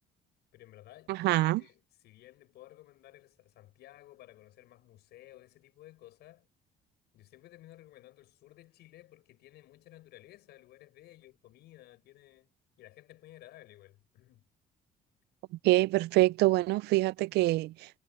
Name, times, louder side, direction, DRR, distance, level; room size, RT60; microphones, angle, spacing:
voice 1, 0.5-6.5 7.1-12.5 12.8-14.5, left 15 dB, 80° left, 7.3 m, -55 dB
voice 2, 1.1-1.6 15.6-18.0, right 19 dB, 80° right, 0.4 m, -25 dB
cardioid pair, 110°, 17 cm